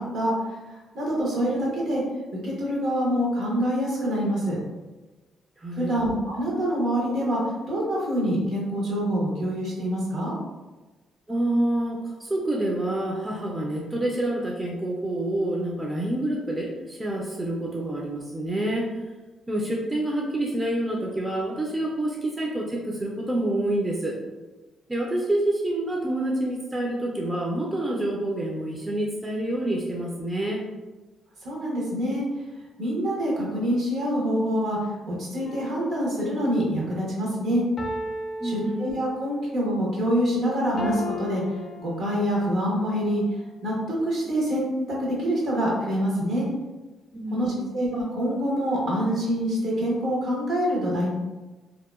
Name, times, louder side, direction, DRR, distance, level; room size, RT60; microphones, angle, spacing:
voice 1, 0.0-2.0 2.4-4.6 5.8-10.3 31.4-32.2 32.8-34.8 35.1-37.6 38.4-41.4 41.8-43.2 43.6-46.5 47.3-51.1, equal, 65° right, -5 dB, 1.1 m, -26 dB
voice 2, 5.6-5.9 11.3-19.0 19.5-24.2 24.9-30.6 38.4-38.9 47.1-47.7, right 1 dB, 15° right, -2 dB, 0.4 m, -27 dB
sound 1, 35.4-36.8 37.8-39.4 40.8-42.5 43.1-43.3, left 1 dB, 45° left, 0.4 m, -36 dB
2.7 x 2.1 x 2.3 m, 1.2 s
cardioid pair, 90°, 0 cm